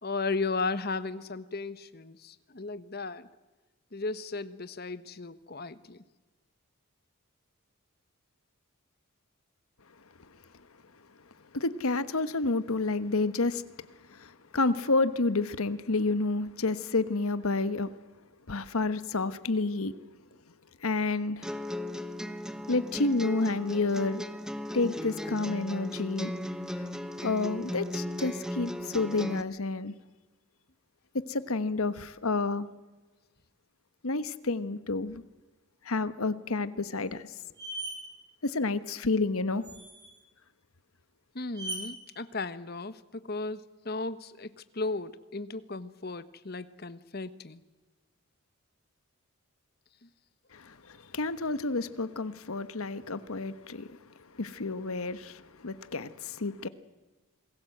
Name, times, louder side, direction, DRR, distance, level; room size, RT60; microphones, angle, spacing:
voice 1, 0.0-3.3 3.9-6.0 41.3-47.6 50.0-50.1, left 3 dB, 45° left, 1.1 m, -35 dB
voice 2, 11.5-13.6 14.1-17.9 18.5-19.9 20.8-21.5 22.7-24.2 24.7-26.3 27.2-29.9 31.3-32.7 34.0-35.2 35.8-37.3 38.4-39.6 50.5-54.0 54.3-56.7, left 3 dB, 80° left, 1.2 m, -30 dB
sound 1, 21.4-29.4, left 1 dB, 5° right, 0.9 m, -37 dB
sound 2, 37.0-37.1 37.6-38.0 39.6-40.2 41.5-41.8, right 2 dB, 20° right, 7.5 m, -38 dB
27.5 x 20.5 x 7.9 m
head